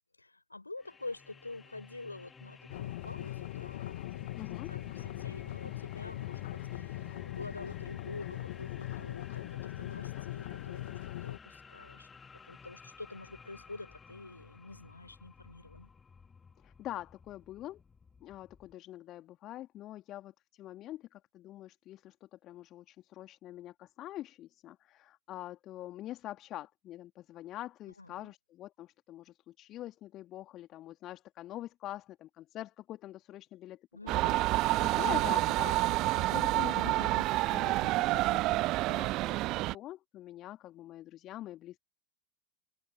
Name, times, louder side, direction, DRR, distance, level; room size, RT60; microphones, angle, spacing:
voice 1, 0.2-4.4 4.7-12.1 12.4-15.9 28.0-28.3 33.9-34.4, left 2 dB, 80° left, 7.2 m, -47 dB
sound 1, 0.8-18.7, left 5 dB, 15° left, 3.4 m, -54 dB
sound 2, 2.7-11.4, left 16 dB, 55° left, 2.2 m, -40 dB
voice 2, 4.4-4.7 16.6-17.8 18.2-33.9 34.2-34.3 34.8-41.8, left 14 dB, 35° left, 2.4 m, -45 dB
sound 3, 34.1-39.7, right 19 dB, 40° right, 0.4 m, -28 dB
figure-of-eight pair, 90°, 0 cm